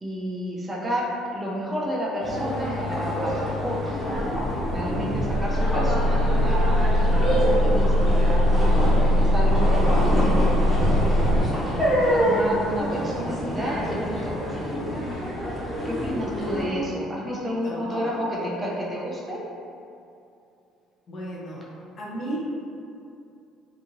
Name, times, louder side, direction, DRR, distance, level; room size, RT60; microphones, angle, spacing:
voice 1, 0.0-3.9 4.7-8.5 9.2-10.6 11.6-14.9 15.8-19.4, equal, 20° right, -4 dB, 0.5 m, -31 dB
sound 1, 2.2-16.7, equal, 10° left, 0.9 m, -27 dB
sound 2, 4.1-11.4, left 1 dB, 85° left, 0.7 m, -21 dB
voice 2, 17.2-18.5 21.1-21.6 22.0-22.4, equal, 45° left, -4 dB, 0.6 m, -34 dB
2.9 x 2.5 x 2.6 m, 2.6 s
cardioid pair, 100°, 0 cm